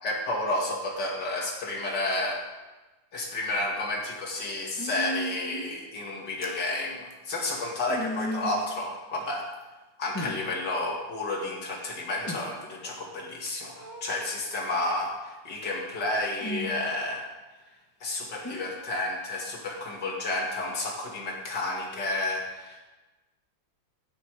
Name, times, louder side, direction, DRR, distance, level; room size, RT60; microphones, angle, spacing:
voice 1, 0.0-2.4 3.1-9.5 10.0-17.3 18.0-22.8, left 2 dB, 65° left, -1 dB, 2.7 m, -31 dB
sound 1, 3.6-3.7 4.8-5.7 6.4-6.6 7.1-7.2 7.6-8.6 9.5-9.6 10.1-10.4 12.1-12.4 13.4-14.2 16.3-16.8 18.4-18.6 20.7-21.0, equal, 10° left, 1.2 m, -35 dB
13.5 x 10.0 x 4.9 m, 1.2 s
omnidirectional pair, 2.0 m